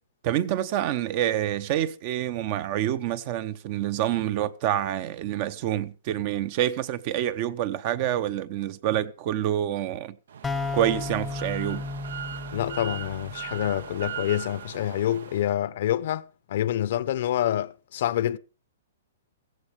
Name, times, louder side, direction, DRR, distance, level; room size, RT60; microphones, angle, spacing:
voice 1, 0.2-10.2 10.7-11.9, right 12 dB, 35° right, 0.8 m, -27 dB
sound 1, 10.3-15.5, right 9 dB, 75° right, 1.0 m, -39 dB
sound 2, 10.4-14.1, left 3 dB, 10° left, 0.9 m, -34 dB
voice 2, 12.5-18.4, left 11 dB, 55° left, 0.8 m, -27 dB
16.0 x 15.5 x 3.3 m
hypercardioid pair, 160°, 0 cm